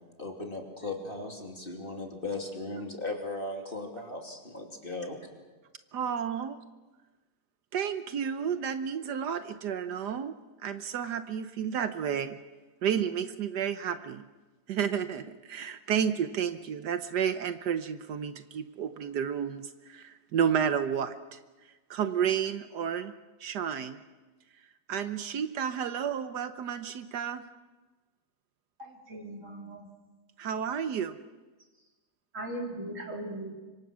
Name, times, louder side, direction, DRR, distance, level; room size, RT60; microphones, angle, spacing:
voice 1, 0.2-5.2, left 2 dB, 30° left, 2 dB, 2.9 m, -37 dB
voice 2, 5.9-6.6 7.7-10.3 10.6-12.4 12.8-14.2 14.7-21.4 21.9-23.1 23.4-24.0 24.9-27.4 30.4-31.2, right 8 dB, 80° right, 9 dB, 1.5 m, -31 dB
voice 3, 28.8-29.9 32.3-33.5, right 1 dB, 50° right, 0 dB, 4.1 m, -38 dB
25.5 x 24.0 x 6.2 m, 1.2 s
omnidirectional pair, 1.7 m